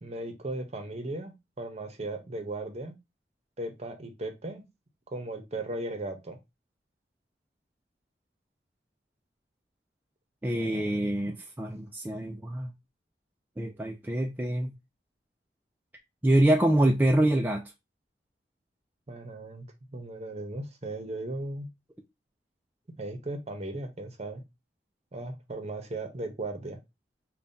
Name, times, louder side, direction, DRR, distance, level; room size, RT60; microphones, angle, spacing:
voice 1, 0.0-2.9 3.6-4.6 5.1-6.4 10.5-11.4 19.1-19.7 19.9-21.7 23.0-24.4 25.1-26.8, right 2 dB, 40° right, 0.8 m, -37 dB
voice 2, 10.4-12.7 13.6-14.7 16.2-17.6, right 1 dB, 10° right, 0.3 m, -25 dB
5.3 x 2.3 x 2.7 m
head